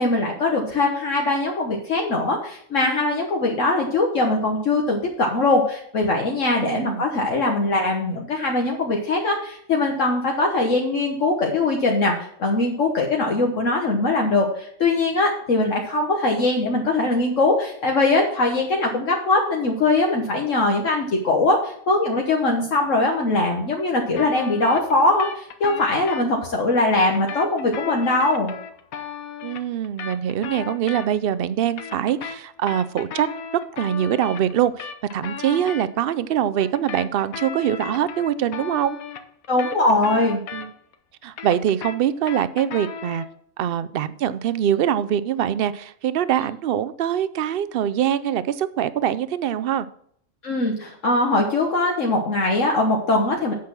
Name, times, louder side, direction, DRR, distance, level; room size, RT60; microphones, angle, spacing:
voice 1, 0.0-28.5 35.4-35.6 39.5-40.4 50.4-53.5, left 2 dB, 65° left, 0 dB, 1.5 m, -21 dB
voice 2, 6.6-7.1 29.4-33.3 33.7-39.0 40.5-40.7 41.2-43.2 43.6-49.9, right 10 dB, 60° right, 15 dB, 0.6 m, -23 dB
sound 1, 24.2-26.3 27.0-31.3 31.6-35.9 36.6-40.9 41.2-43.4, left 7 dB, 90° left, 1.3 m, -36 dB
8.5 x 6.2 x 5.9 m, 0.66 s
omnidirectional pair, 1.4 m